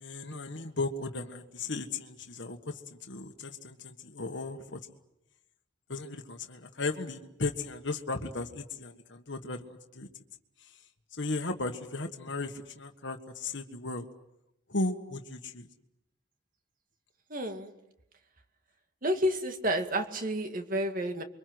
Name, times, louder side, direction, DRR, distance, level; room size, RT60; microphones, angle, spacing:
voice 1, 0.0-4.8 5.9-10.1 10.6-10.8 11.1-14.1 14.7-15.7, left 2 dB, 60° left, 4 dB, 1.6 m, -36 dB
voice 2, 17.3-17.7 19.0-21.2, equal, 40° right, 6 dB, 2.2 m, -30 dB
29.0 x 24.0 x 7.9 m, 0.88 s
head